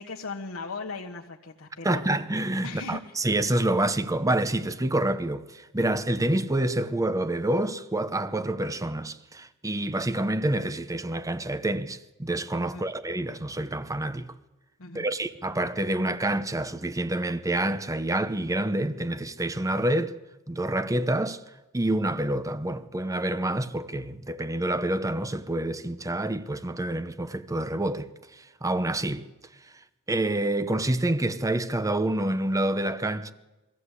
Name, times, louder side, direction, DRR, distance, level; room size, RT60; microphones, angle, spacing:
voice 1, 0.0-2.2 2.6-3.2 12.7-12.9 14.8-15.1, left 3 dB, 75° left, 1.4 m, -38 dB
voice 2, 1.8-14.3 14.9-20.1 20.5-21.4 21.7-28.1 28.6-29.2 30.1-33.3, right 1 dB, 15° right, 0.8 m, -27 dB
23.0 x 15.0 x 8.3 m
head